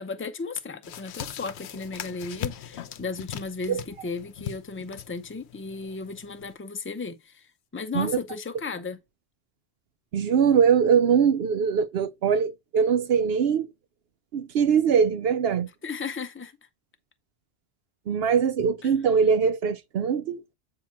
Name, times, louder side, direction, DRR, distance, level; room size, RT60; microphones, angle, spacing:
voice 1, 0.0-7.5 7.7-9.0 15.8-16.5 18.8-18.9, left 4 dB, 15° left, 0.5 m, -35 dB
sound 1, 0.8-6.5, left 10 dB, 80° left, 0.9 m, -40 dB
voice 2, 10.1-13.7 14.3-15.7 18.1-20.4, right 7 dB, 70° right, 0.8 m, -22 dB
8.4 x 2.8 x 5.7 m
omnidirectional pair, 1.1 m